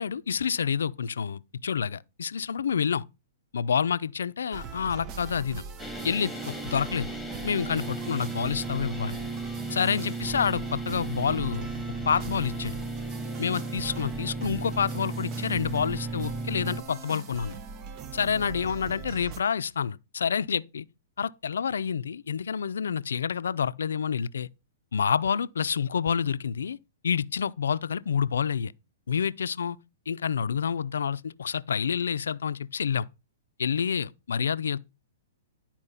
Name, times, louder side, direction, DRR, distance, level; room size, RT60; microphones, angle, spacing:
voice 1, 0.0-3.0 3.5-5.6 6.0-7.1 7.4-9.2 9.7-11.7 12.1-12.7 13.4-17.6 18.1-20.8 21.2-24.5 24.9-26.8 27.0-28.7 29.1-29.8 30.1-33.1 33.6-34.8, left 7 dB, 80° left, 0.5 m, -28 dB
sound 1, 4.5-19.4, right 6 dB, 35° right, 0.9 m, -41 dB
sound 2, 5.8-16.8, right 2 dB, ahead, 2.1 m, -35 dB
11.5 x 4.5 x 5.6 m
hypercardioid pair, 125°, 0 cm